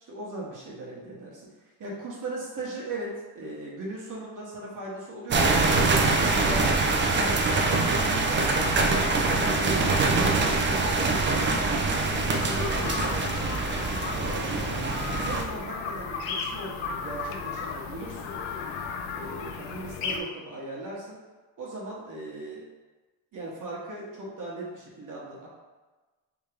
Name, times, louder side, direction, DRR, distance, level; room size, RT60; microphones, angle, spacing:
voice 1, 0.1-6.7 7.1-7.8 8.2-8.5 8.8-13.4 13.8-14.9 15.2-18.4 19.1-21.2 21.6-22.7 23.3-25.5, right 2 dB, 45° right, -5 dB, 1.1 m, -38 dB
sound 1, 5.3-15.4, right 3 dB, 30° right, 0.4 m, -24 dB
sound 2, 11.9-20.2, left 5 dB, 85° left, 0.6 m, -35 dB
3.5 x 2.8 x 3.3 m, 1.2 s
cardioid pair, 95°, 43 cm